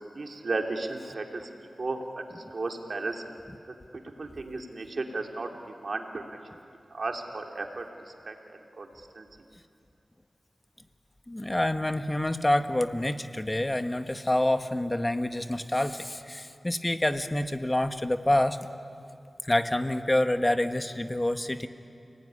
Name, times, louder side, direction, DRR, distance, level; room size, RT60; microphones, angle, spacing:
voice 1, 0.1-3.2 4.2-6.2 6.9-7.8 8.2-8.4 8.8-8.9 9.1-9.2, right 3 dB, 65° right, 3 dB, 3.0 m, -34 dB
voice 2, 11.3-18.6 19.4-21.7, left 1 dB, 25° left, 8 dB, 1.6 m, -27 dB
29.5 x 18.5 x 9.9 m, 2.5 s
cardioid pair, 45°, 0 cm